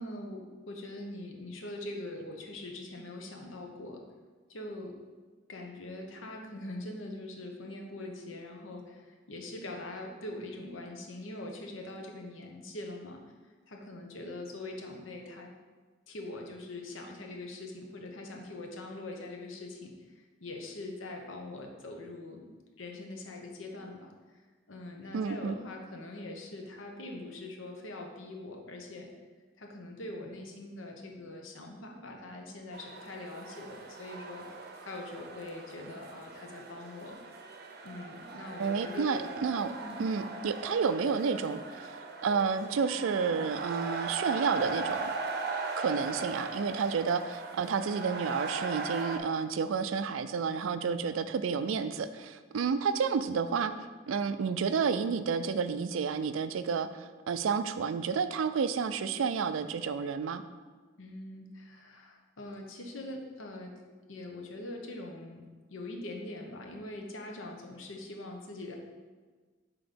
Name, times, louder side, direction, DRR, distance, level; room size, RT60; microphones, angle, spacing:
voice 1, 0.0-4.0 4.5-5.0 5.5-13.2 13.7-15.5 16.1-19.9 20.4-24.1 24.7-29.1 29.6-34.5 34.8-37.2 37.8-39.3 39.8-40.0 61.0-63.8 64.1-68.8, left 2 dB, 85° left, 2 dB, 0.9 m, -43 dB
voice 2, 25.1-25.6 38.6-39.7 40.0-45.1 45.8-53.7 54.1-60.4, right 5 dB, 90° right, 11 dB, 0.4 m, -30 dB
sound 1, 32.7-49.2, right 3 dB, 55° right, 0.6 m, -39 dB
6.1 x 3.7 x 5.2 m, 1.4 s
head